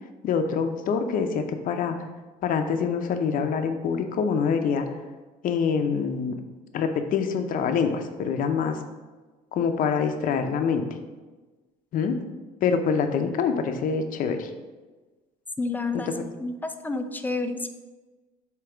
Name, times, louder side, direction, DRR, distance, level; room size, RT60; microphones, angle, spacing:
voice 1, 0.2-1.9 2.4-4.9 5.4-6.4 6.7-8.8 9.5-10.8 11.9-12.2 12.6-14.5 16.1-16.2, left 6 dB, 55° left, 6 dB, 0.7 m, -25 dB
voice 2, 15.6-16.1 16.4-17.7, left 3 dB, 10° left, 7 dB, 0.5 m, -29 dB
7.8 x 3.0 x 4.9 m, 1.3 s
cardioid pair, 105°, 17 cm